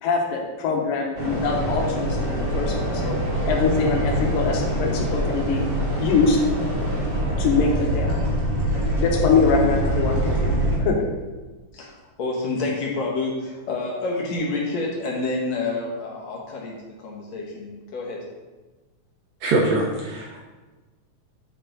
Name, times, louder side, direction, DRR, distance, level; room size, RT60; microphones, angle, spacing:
voice 1, 0.0-3.2 3.5-5.6 6.0-6.4 7.4-8.3 8.7-10.5 10.8-11.0, left 4 dB, 85° left, 0 dB, 2.7 m, -23 dB
sound 1, 1.1-10.8, equal, 45° right, 0.7 m, -24 dB
voice 2, 11.7-18.2, left 3 dB, 65° left, -2 dB, 2.1 m, -28 dB
voice 3, 19.4-20.4, right 2 dB, 75° right, -2 dB, 1.7 m, -23 dB
8.1 x 4.6 x 3.8 m, 1.2 s
omnidirectional pair, 3.8 m